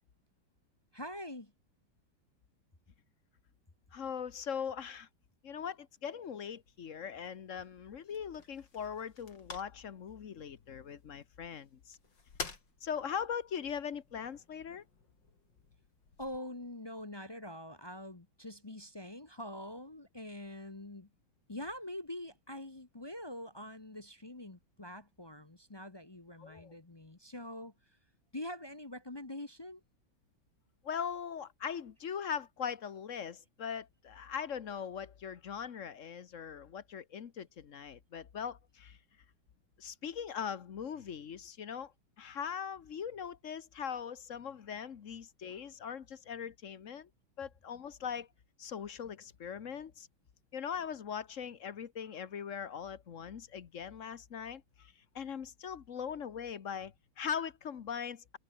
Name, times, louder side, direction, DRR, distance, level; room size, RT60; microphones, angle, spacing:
voice 1, 0.9-1.5 16.2-21.1 21.5-28.0 28.3-29.8, left 1 dB, 20° left, 0.6 m, -44 dB
voice 2, 3.9-5.1 5.4-12.0 12.8-14.8 26.4-26.7 30.8-39.0 39.8-41.9 42.2-47.1 47.4-48.3 48.6-50.1 50.5-58.4, left 7 dB, 45° left, 1.2 m, -40 dB
sound 1, 6.4-16.4, left 4 dB, 65° left, 4.2 m, -51 dB
omnidirectional pair, 2.2 m